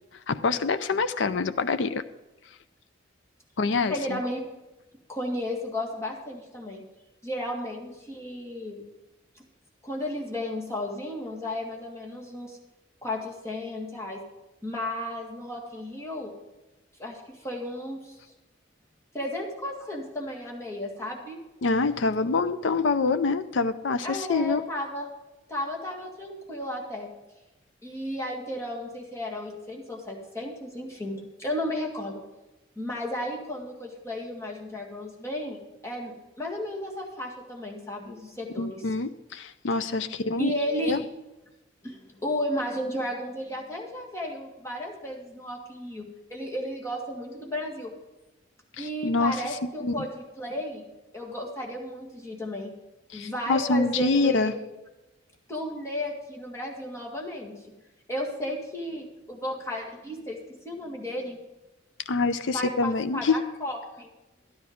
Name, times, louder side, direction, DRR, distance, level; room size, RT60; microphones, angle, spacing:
voice 1, 0.3-2.0 3.6-4.2 21.6-24.6 38.6-41.0 48.8-49.4 49.8-50.1 53.1-54.5 62.1-63.4, left 3 dB, 70° left, 11 dB, 0.5 m, -26 dB
voice 2, 3.9-4.4 5.1-6.8 7.2-8.8 9.8-12.6 13.0-14.2 14.6-16.3 17.0-18.2 19.1-21.4 24.0-25.1 25.5-27.1 27.8-32.2 32.8-35.6 35.8-38.8 39.8-39.9 40.4-41.0 41.8-47.9 48.8-50.9 51.1-52.7 53.1-54.7 55.5-57.7 58.1-60.4 60.6-61.4 62.5-64.1, left 1 dB, 15° left, -2 dB, 2.0 m, -33 dB
12.5 x 10.0 x 5.2 m, 1.0 s
head